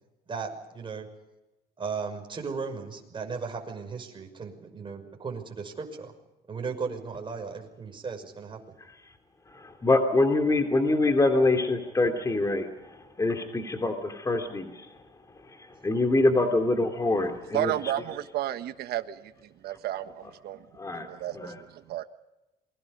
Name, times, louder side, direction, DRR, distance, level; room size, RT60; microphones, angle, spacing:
voice 1, 0.3-1.1 1.8-6.1 6.5-8.6, right 5 dB, 30° right, 3 dB, 5.9 m, -36 dB
voice 2, 9.5-14.9 15.5-17.7 20.7-21.1 21.3-21.6, left 2 dB, 20° left, 5 dB, 2.9 m, -25 dB
voice 3, 17.5-19.2 19.6-20.6 20.9-22.0, right 13 dB, 70° right, 9 dB, 1.4 m, -32 dB
28.0 x 22.0 x 5.4 m, 1.0 s
cardioid pair, 110°, 17 cm